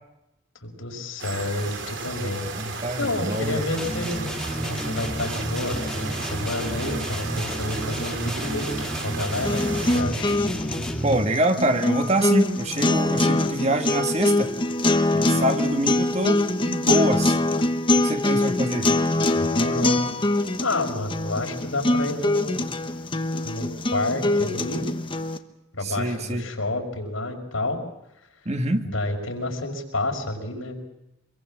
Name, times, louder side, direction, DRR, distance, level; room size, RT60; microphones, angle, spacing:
voice 1, 0.6-2.5 3.0-4.2 4.6-10.4 19.3-20.0 20.6-22.6 23.4-24.9 25.8-27.8 28.8-30.8, left 2 dB, 85° left, 2 dB, 5.4 m, -29 dB
sound 1, 1.2-10.0, right 4 dB, 65° right, 3.5 m, -34 dB
voice 2, 2.5-3.7 11.0-14.5 15.1-17.4 17.9-18.9 25.8-26.5 28.4-28.8, right 1 dB, 30° right, 6 dB, 1.6 m, -25 dB
sound 2, 3.8-11.3, equal, ahead, 2.5 m, -31 dB
sound 3, 9.4-25.4, left 2 dB, 25° left, 1.2 m, -23 dB
25.5 x 22.5 x 7.5 m, 0.89 s
head